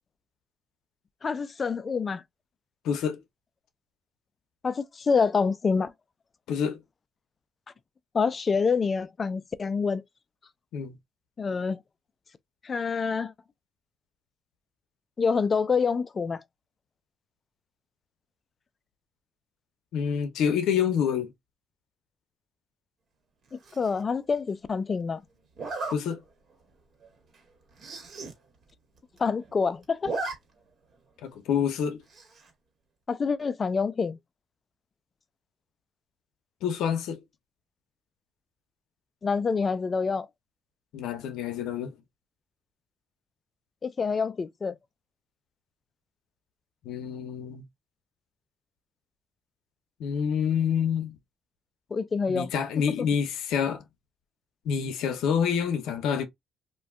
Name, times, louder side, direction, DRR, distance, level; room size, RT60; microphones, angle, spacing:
voice 1, 1.2-2.2 4.6-5.9 8.1-10.0 11.4-11.8 12.6-13.3 15.2-16.4 23.5-25.2 29.2-30.2 33.1-34.2 39.2-40.3 43.8-44.8 51.9-52.5 53.0-53.1, left 5 dB, 40° left, 0.3 m, -27 dB
voice 2, 2.8-3.2 6.5-6.8 10.7-10.9 19.9-21.3 25.9-26.2 31.2-32.0 36.6-37.2 40.9-42.0 46.8-47.6 50.0-51.2 52.3-53.8 54.6-56.3, left 7 dB, 90° left, 0.6 m, -27 dB
Zipper (clothing), 23.6-24.0 25.6-26.0 26.5-26.7 27.0-27.1 27.3-27.4 27.7-28.3 28.7-28.8 29.0-29.5 29.8-30.3 30.7-30.8 32.1-32.5, right 3 dB, 55° right, 1.5 m, -35 dB
2.5 x 2.2 x 3.4 m
cardioid pair, 90°, 0 cm